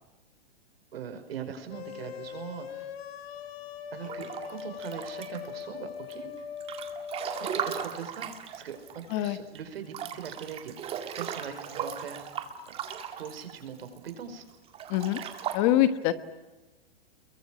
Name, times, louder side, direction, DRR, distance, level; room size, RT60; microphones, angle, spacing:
voice 1, 0.9-2.9 3.9-6.3 7.4-10.7 11.1-12.2 13.2-14.4, right 7 dB, 85° right, 8 dB, 5.3 m, -41 dB
sound 1, 1.7-7.9, left 7 dB, 85° left, 3.5 m, -41 dB
Breathing / Bathtub (filling or washing) / Splash splatter, 4.0-5.6 6.1-9.3 9.6-9.7 9.9-14.1 14.7-15.6, right 8 dB, 20° right, 2.1 m, -37 dB
voice 2, 14.9-15.2 15.5-16.1, left 13 dB, 30° left, 12 dB, 1.4 m, -24 dB
29.5 x 23.0 x 7.5 m, 1.1 s
supercardioid pair, 165°, 30 cm